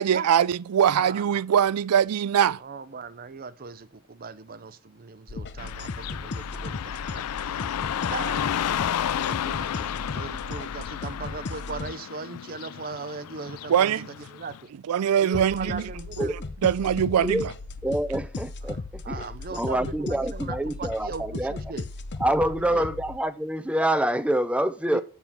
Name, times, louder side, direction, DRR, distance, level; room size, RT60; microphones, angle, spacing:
voice 1, 0.0-2.6 13.7-14.1 14.9-15.8 16.2-16.3 16.6-17.5, right 9 dB, 85° right, 0.4 m, -22 dB
voice 2, 0.9-1.3 2.6-7.7 8.1-8.3 9.0-14.6 15.2-16.3 18.7-21.9 22.4-22.9 24.9-25.0, right 4 dB, 40° right, 0.7 m, -38 dB
sound 1, 5.3-11.9 15.3-23.2, left 3 dB, 50° left, 0.7 m, -36 dB
Car passing by / Traffic noise roadway noise, 5.6-14.6, left 10 dB, 85° left, 0.4 m, -32 dB
voice 3, 17.8-19.2 19.5-21.6 22.2-25.0, right 1 dB, 5° right, 0.5 m, -26 dB
7.2 x 7.0 x 5.8 m
head